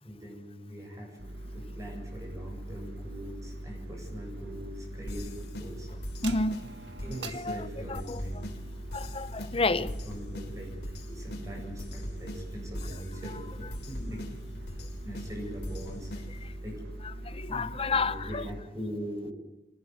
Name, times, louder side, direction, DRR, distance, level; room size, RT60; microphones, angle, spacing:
voice 1, 0.0-1.2 1.5-5.9 7.0-8.4 9.7-10.7 11.1-14.3 15.0-16.1 16.6-16.8 17.5-19.3, equal, 20° right, 8.0 m, -41 dB
sound 1, 1.2-18.6, right 1 dB, 80° right, 1.6 m, -42 dB
sound 2, 5.1-16.6, left 1 dB, 70° left, 3.8 m, -42 dB
voice 2, 6.2-6.6 7.3-7.6 7.9-8.2 8.9-9.9 17.2-18.4, left 3 dB, 35° left, 0.9 m, -30 dB
25.5 x 18.5 x 9.6 m
head